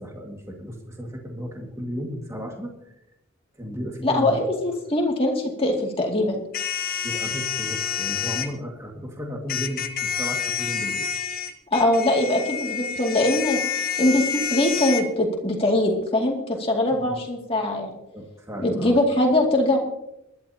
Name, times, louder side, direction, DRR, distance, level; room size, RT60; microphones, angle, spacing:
voice 1, 0.0-2.9 3.6-4.5 7.0-11.1 16.9-17.2 18.1-19.0, equal, 15° right, 0 dB, 2.0 m, -34 dB
voice 2, 4.0-6.4 11.7-13.6 14.0-18.0 18.6-19.8, left 1 dB, 25° left, 1 dB, 2.4 m, -22 dB
sound 1, 6.5-8.5 9.5-15.0, left 8 dB, 45° left, 1.2 m, -28 dB
21.0 x 12.0 x 2.9 m, 0.85 s
head